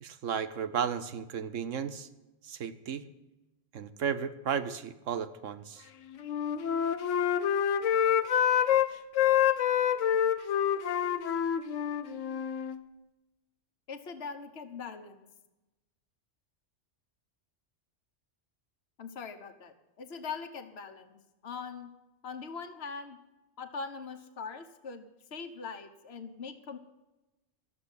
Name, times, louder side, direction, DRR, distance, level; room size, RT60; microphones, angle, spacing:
voice 1, 0.0-2.1 2.4-3.0 3.7-5.9, right 7 dB, 85° right, 11 dB, 1.3 m, -34 dB
Wind instrument woodwind instrument, 6.1-8.9 9.2-12.8, left 9 dB, 85° left, 1.1 m, -27 dB
voice 2, 13.9-15.2 19.0-21.9 22.2-23.2 23.6-26.8, left 5 dB, 60° left, 7 dB, 1.4 m, -42 dB
13.0 x 7.8 x 9.7 m, 1.0 s
omnidirectional pair, 1.3 m